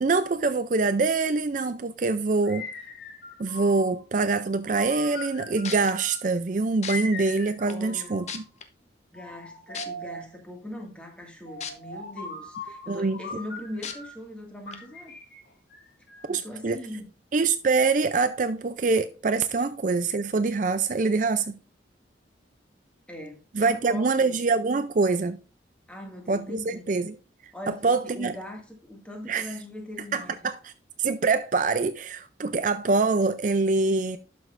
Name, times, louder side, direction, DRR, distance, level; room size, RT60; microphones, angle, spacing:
voice 1, 0.0-2.7 3.4-8.4 12.9-13.2 16.3-16.8 17.3-21.5 23.5-25.4 26.3-27.1 27.7-28.4 29.3-29.5 30.1-30.7 31.0-34.2, right 4 dB, 40° right, 0.4 m, -25 dB
sound 1, 2.4-4.0 4.6-6.2 6.9-8.5 9.1-10.3 11.5-14.2 14.7-16.4, left 2 dB, 55° left, 2.8 m, -40 dB
sound 2, 5.3-5.4 5.6-5.9 6.8-6.9 7.7-7.8 8.3-8.6 9.7-9.9 11.6-11.7 12.2-12.3 13.8-13.9 14.7-14.8, left 7 dB, 35° left, 1.0 m, -34 dB
voice 2, 7.7-8.3 9.1-15.2 16.3-17.1 23.1-24.4 25.9-26.9 27.5-30.5, left 1 dB, 5° left, 2.0 m, -40 dB
11.5 x 6.1 x 2.5 m
head